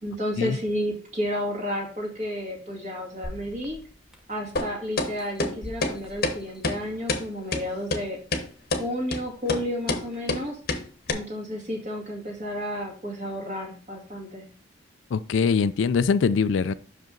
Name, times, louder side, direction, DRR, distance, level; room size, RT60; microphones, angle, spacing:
voice 1, 0.0-3.8 4.3-8.2 8.8-10.6 11.1-14.4, equal, 40° right, 2.2 m, -31 dB
sound 1, 3.2-4.5 5.0-7.2 7.7-7.8, left 1 dB, 5° right, 0.8 m, -43 dB
sound 2, 4.6-4.7 5.0-5.1 5.4-5.5 5.8-5.9 6.2-6.4 6.6-6.8 7.1-7.2 7.5-7.6 7.9-8.0 8.3-8.4 8.7-8.8 9.1-9.2 9.5-9.6 9.9-10.0 10.3-10.4 10.7-10.8 11.1-11.2, left 2 dB, 50° left, 0.9 m, -26 dB
voice 2, 15.1-16.7, left 5 dB, 70° left, 0.4 m, -22 dB
6.0 x 5.2 x 3.8 m
head